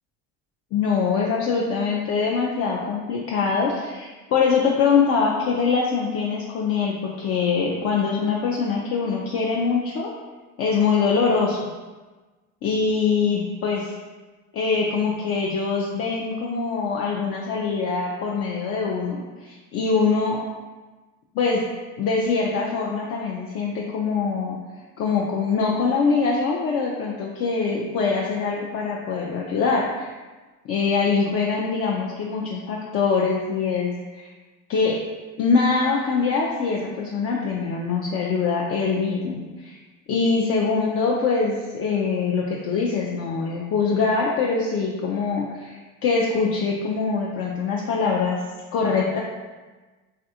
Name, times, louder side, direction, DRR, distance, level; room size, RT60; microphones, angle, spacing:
voice 1, 0.7-10.1 10.6-11.6 12.6-13.9 14.5-20.4 21.3-21.6 22.0-24.6 25.0-30.1 30.7-34.3 34.7-35.0 35.4-39.8 40.1-48.4 48.7-49.2, left 5 dB, 50° left, -3 dB, 0.5 m, -23 dB
3.2 x 2.4 x 2.7 m, 1.3 s
supercardioid pair, 95°, 29 cm